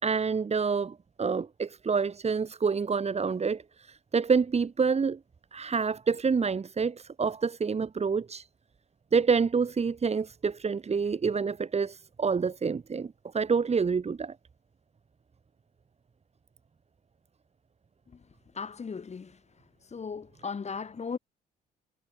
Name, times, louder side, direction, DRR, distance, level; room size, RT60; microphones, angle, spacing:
voice 1, 0.0-5.2 5.5-8.5 9.1-14.3, right 5 dB, 35° right, 4.9 m, -27 dB
voice 2, 18.6-19.3 19.9-21.2, left 5 dB, 35° left, 6.9 m, -36 dB
supercardioid pair, 80°, 19 cm